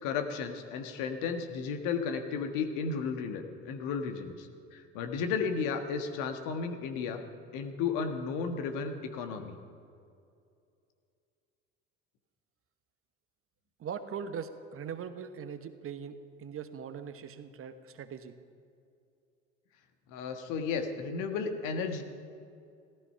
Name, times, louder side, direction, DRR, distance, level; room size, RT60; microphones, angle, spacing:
voice 1, 0.0-7.2 7.5-9.5 20.1-22.0, left 5 dB, 65° left, 6 dB, 1.5 m, -34 dB
voice 2, 13.8-18.3, right 7 dB, 40° right, 9 dB, 1.1 m, -41 dB
15.0 x 14.0 x 5.7 m, 2.5 s
hypercardioid pair, 65°, 34 cm